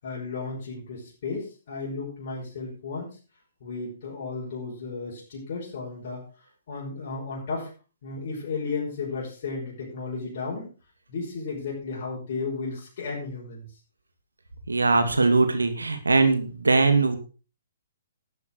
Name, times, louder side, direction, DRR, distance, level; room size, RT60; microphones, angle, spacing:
voice 1, 0.0-3.2 3.6-6.3 6.7-7.7 8.0-10.7 11.1-13.7, left 4 dB, 55° left, -5 dB, 5.5 m, -34 dB
voice 2, 14.7-17.2, right 3 dB, 85° right, 8 dB, 2.6 m, -21 dB
12.5 x 9.6 x 4.7 m, 0.35 s
figure-of-eight pair, 130°, 0 cm